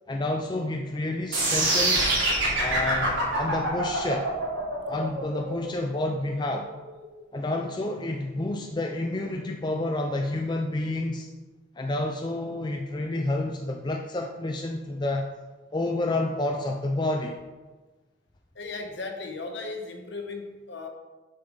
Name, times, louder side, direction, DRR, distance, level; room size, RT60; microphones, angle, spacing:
voice 1, 0.1-2.1 2.6-4.3 4.9-6.7 7.3-11.3 11.8-15.3 15.7-17.4, left 2 dB, 20° left, 2 dB, 0.4 m, -29 dB
sound 1, 1.3-7.4, right 2 dB, 80° right, 2.9 m, -25 dB
voice 2, 18.5-20.9, left 3 dB, 60° left, 3 dB, 1.1 m, -36 dB
7.0 x 5.7 x 5.4 m, 1.2 s
head